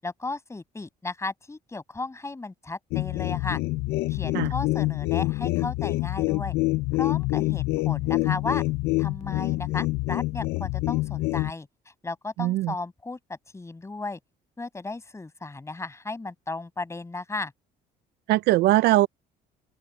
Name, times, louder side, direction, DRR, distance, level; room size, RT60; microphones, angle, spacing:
voice 1, 0.0-3.6 4.1-6.5 6.9-8.6 9.0-11.7 12.0-14.2 14.6-17.5, left 3 dB, 15° left, 5.8 m, -35 dB
sound 1, 2.9-11.5, left 21 dB, 85° left, 0.5 m, -26 dB
voice 2, 12.4-12.7 18.3-19.1, right 17 dB, 80° right, 0.5 m, -20 dB
cardioid pair, 110°, 17 cm